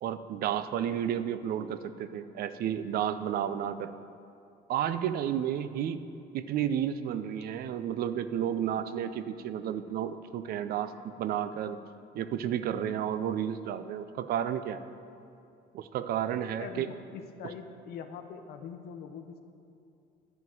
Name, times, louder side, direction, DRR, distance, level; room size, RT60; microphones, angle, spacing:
voice 1, 0.0-3.9 4.7-6.0 6.3-11.8 12.1-14.9 15.7-16.9 17.4-17.5, right 9 dB, 65° right, 11 dB, 0.5 m, -32 dB
voice 2, 16.6-19.4, left 7 dB, 70° left, 6 dB, 0.7 m, -43 dB
11.0 x 3.8 x 7.5 m, 2.6 s
cardioid pair, 110°, 17 cm